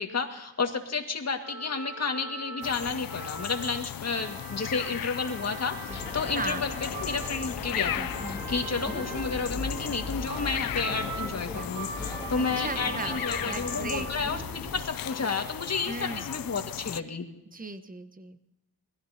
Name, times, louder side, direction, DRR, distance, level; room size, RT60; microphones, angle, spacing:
voice 1, 0.0-17.3, left 4 dB, 35° left, 4 dB, 2.0 m, -31 dB
sound 1, 1.4-14.4, right 4 dB, 60° right, 4.0 m, -42 dB
sound 2, 2.6-17.0, left 12 dB, 55° left, 0.6 m, -37 dB
sound 3, 5.9-14.8, left 2 dB, 5° left, 2.9 m, -39 dB
voice 2, 6.3-6.7 12.3-14.0 15.9-16.3 17.5-18.5, right 3 dB, 20° right, 10 dB, 1.1 m, -37 dB
21.0 x 15.5 x 2.9 m, 0.98 s
cardioid pair, 75°, 42 cm